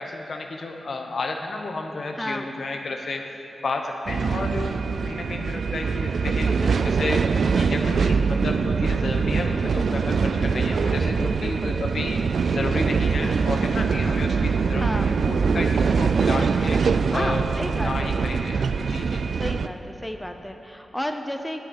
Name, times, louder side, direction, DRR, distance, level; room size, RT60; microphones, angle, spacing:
voice 1, 0.0-3.3 3.6-4.8 5.0-6.5 6.8-7.2 7.5-12.2 12.5-16.8 17.1-19.2, left 3 dB, 65° left, 3 dB, 1.1 m, -32 dB
voice 2, 2.2-2.5 6.2-7.0 7.8-8.2 11.0-11.7 13.2-13.4 14.8-15.1 17.1-18.2 19.4-21.6, equal, 5° left, 5 dB, 0.7 m, -33 dB
sound 1, 4.1-19.7, right 5 dB, 75° right, 0.3 m, -23 dB
10.5 x 8.1 x 6.5 m, 2.9 s
cardioid pair, 70°, 0 cm